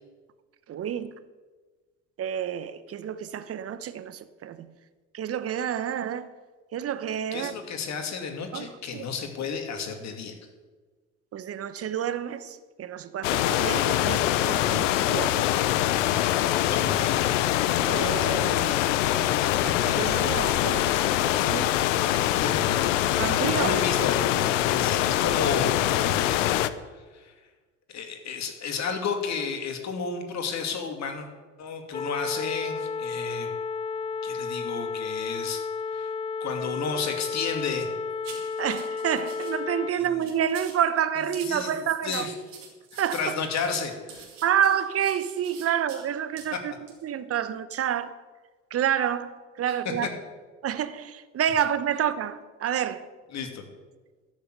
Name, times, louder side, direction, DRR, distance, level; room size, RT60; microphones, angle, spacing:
voice 1, 0.7-1.1 2.2-4.7 5.1-6.3 6.7-7.5 8.5-9.0 11.3-16.0 17.9-21.7 23.1-23.7 38.6-42.3 43.0-43.2 44.4-46.7 47.0-48.1 48.7-49.3 49.6-50.1 50.6-53.0, right 9 dB, 40° right, 1.1 m, -29 dB
voice 2, 7.3-10.3 16.5-17.3 22.4-22.8 23.1-26.6 27.1-27.3 27.9-31.3 31.6-33.5 34.2-35.6 35.9-36.1 36.4-37.9 39.9-40.1 41.4-41.8 42.0-42.3 43.1-44.2 46.5-46.6 49.7-50.1 53.3-53.6, left 5 dB, 45° left, 2.7 m, -32 dB
sound 1, 13.2-26.7, left 13 dB, 70° left, 0.8 m, -24 dB
sound 2, 31.9-39.9, left 5 dB, 15° left, 0.4 m, -32 dB
sound 3, 38.2-39.5 40.0-40.8 41.3-46.0 46.4-46.5 46.9-47.0, right 6 dB, 80° right, 2.8 m, -46 dB
13.0 x 6.9 x 9.6 m
hypercardioid pair, 65°, 37 cm